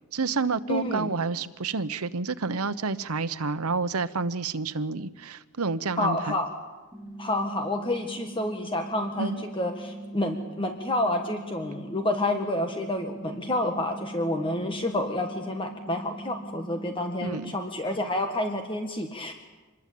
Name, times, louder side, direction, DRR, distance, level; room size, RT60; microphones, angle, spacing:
voice 1, 0.1-6.4 9.2-9.4 17.2-17.6, right 4 dB, 85° right, 13 dB, 1.0 m, -29 dB
voice 2, 0.7-1.1 6.0-6.5 7.2-19.3, left 1 dB, 25° left, 5 dB, 1.6 m, -29 dB
sound 1, 6.9-16.9, right 1 dB, 5° right, 4.1 m, -41 dB
26.0 x 21.0 x 8.5 m, 1.2 s
head